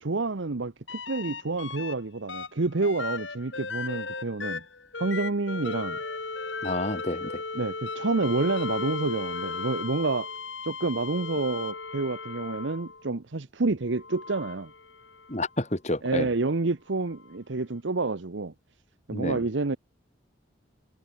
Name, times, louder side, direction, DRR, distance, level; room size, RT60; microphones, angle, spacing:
voice 1, 0.0-4.6 5.0-6.0 7.5-10.3 10.6-14.7 16.0-18.5 19.1-19.8, right 3 dB, 80° right, 0.9 m, -28 dB
sound 1, 0.9-2.0 2.3-13.1 13.9-15.5 17.2-17.3, left 4 dB, 80° left, 4.2 m, -36 dB
voice 2, 6.6-7.4 15.3-16.3 19.1-19.5, left 1 dB, 35° left, 2.6 m, -30 dB
head